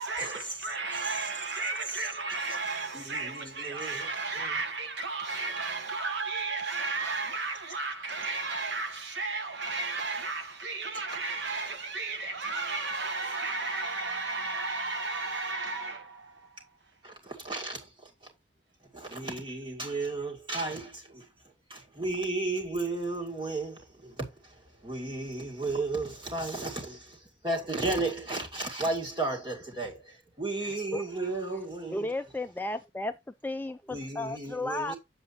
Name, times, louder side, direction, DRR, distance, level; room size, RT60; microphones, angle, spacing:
voice 1, 0.0-16.7, right 3 dB, 70° right, 1.2 m, -33 dB
voice 2, 2.9-4.1 4.4-4.5 17.0-18.1 18.9-21.3 21.7-24.5 24.8-27.2 27.4-32.1 33.9-35.0, right 2 dB, 25° right, 2.3 m, -34 dB
voice 3, 30.6-31.0 31.9-33.2 33.4-34.9, left 2 dB, 10° left, 0.3 m, -34 dB
7.8 x 7.7 x 2.8 m
head